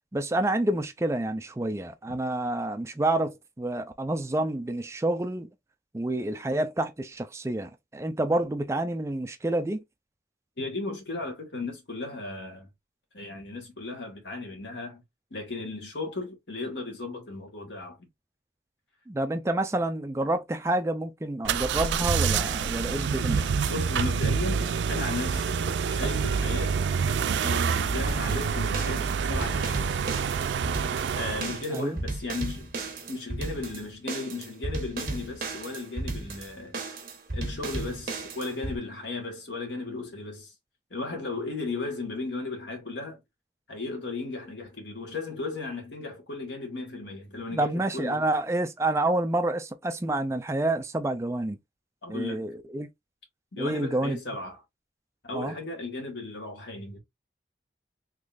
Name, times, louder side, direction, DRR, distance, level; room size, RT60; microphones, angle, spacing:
voice 1, 0.1-5.5 5.9-9.8 19.1-23.5 31.7-32.0 47.5-51.6 52.1-52.9 53.6-54.2 55.3-55.5, right 1 dB, 15° right, 0.3 m, -28 dB
voice 2, 10.6-12.7 13.1-15.0 15.3-18.1 23.7-25.6 25.9-26.8 27.4-30.0 31.1-32.7 33.1-36.8 37.3-40.5 40.9-43.2 43.7-48.3 52.0-52.5 53.5-54.6 55.2-57.0, left 3 dB, 85° left, 1.6 m, -35 dB
sound 1, 21.4-31.6, right 6 dB, 90° right, 0.4 m, -27 dB
sound 2, 28.1-38.8, right 2 dB, 50° right, 1.0 m, -35 dB
3.7 x 3.1 x 2.4 m
head